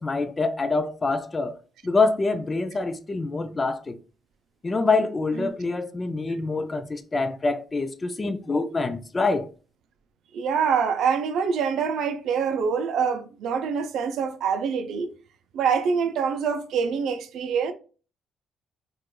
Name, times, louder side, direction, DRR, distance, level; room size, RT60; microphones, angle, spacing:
voice 1, 0.0-1.6 1.8-4.0 4.6-9.5, left 3 dB, 30° left, 0.4 m, -25 dB
voice 2, 10.3-15.1 15.5-17.7, right 6 dB, 75° right, 0.5 m, -25 dB
4.5 x 2.4 x 2.2 m
cardioid pair, 90°, 0 cm